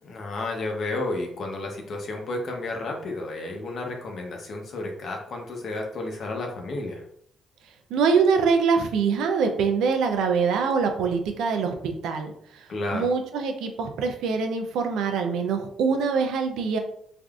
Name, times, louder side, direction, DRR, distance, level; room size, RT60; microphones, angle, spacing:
voice 1, 0.0-7.0 12.7-13.1, left 2 dB, 60° left, 2 dB, 0.7 m, -32 dB
voice 2, 7.9-16.8, right 5 dB, 85° right, 5 dB, 0.5 m, -24 dB
3.4 x 2.5 x 2.4 m, 0.67 s
cardioid pair, 90°, 0 cm